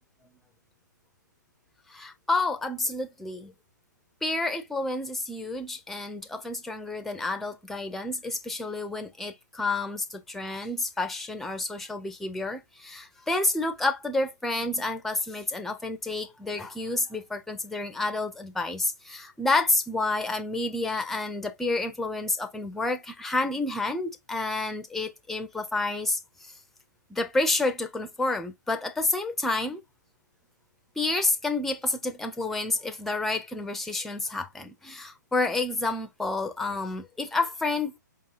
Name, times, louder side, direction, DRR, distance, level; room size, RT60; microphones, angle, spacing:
voice 1, 1.9-3.5 4.2-26.5 27.1-29.8 31.0-38.0, left 2 dB, ahead, 0.6 m, -29 dB
5.2 x 2.8 x 2.6 m
figure-of-eight pair, 120°, 10 cm